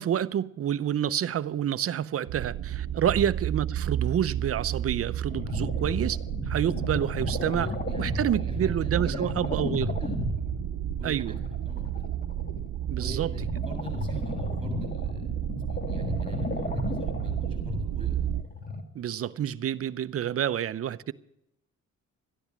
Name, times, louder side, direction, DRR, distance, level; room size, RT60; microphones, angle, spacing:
voice 1, 0.0-6.2 6.5-7.7 8.0-9.9 11.0-11.3 12.9-13.3 18.9-21.1, right 10 dB, 50° right, 0.7 m, -28 dB
sound 1, 2.3-18.4, right 11 dB, 80° right, 0.9 m, -32 dB
sound 2, 5.3-18.8, left 3 dB, 30° left, 2.3 m, -35 dB
voice 2, 7.6-10.2 11.0-11.4 11.6-12.1 12.9-15.3 15.7-18.3, right 1 dB, 20° right, 6.6 m, -43 dB
13.5 x 10.5 x 7.3 m
cardioid pair, 90°, 30 cm